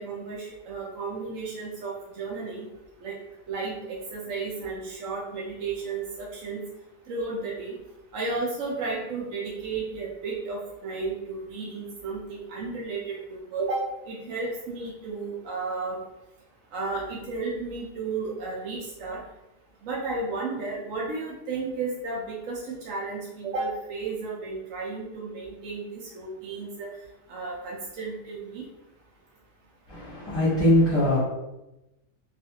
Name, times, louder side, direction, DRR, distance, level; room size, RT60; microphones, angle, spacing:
voice 1, 0.0-2.7 3.0-3.2 3.5-6.6 7.1-7.7 8.1-13.8 14.1-16.0 16.7-19.2 19.8-22.6 22.8-26.9 27.3-28.6, right 3 dB, 70° right, -4 dB, 0.9 m, -33 dB
voice 2, 29.9-31.2, left 1 dB, 25° left, -10 dB, 0.7 m, -22 dB
2.4 x 2.4 x 2.7 m, 0.95 s
omnidirectional pair, 1.5 m